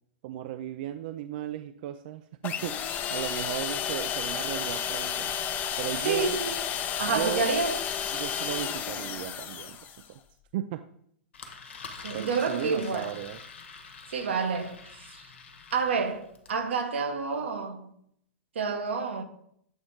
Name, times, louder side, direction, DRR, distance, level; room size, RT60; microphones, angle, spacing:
voice 1, 0.2-5.3 5.8-6.4 7.1-7.5 8.1-9.8 10.1-10.2 10.5-10.8 12.1-13.4, right 12 dB, 55° right, 0.4 m, -35 dB
sound 1, 2.4-10.1, left 8 dB, 30° left, 0.5 m, -32 dB
voice 2, 6.0-6.6 7.0-7.7 12.0-13.1 14.1-15.2 15.7-17.9 18.5-19.2, right 4 dB, 80° right, 1.1 m, -29 dB
Engine, 11.3-16.6, left 5 dB, 85° left, 1.1 m, -45 dB
7.9 x 3.0 x 4.9 m
hypercardioid pair, 125°, 6 cm